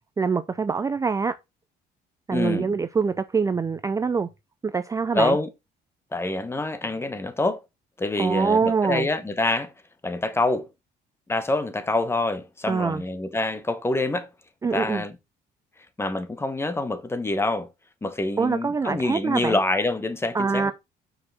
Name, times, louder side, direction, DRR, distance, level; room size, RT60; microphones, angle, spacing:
voice 1, 0.2-1.3 2.3-4.3 4.6-5.4 8.2-9.1 12.7-13.0 14.6-15.0 18.4-19.6 20.3-20.7, right 5 dB, 20° right, 0.4 m, -24 dB
voice 2, 2.3-2.7 5.1-5.5 6.1-7.6 8.0-9.7 10.0-10.7 11.3-14.3 14.7-15.1 16.0-17.7 18.0-20.7, left 2 dB, 15° left, 1.2 m, -26 dB
5.9 x 5.1 x 5.7 m
cardioid pair, 110°, 17 cm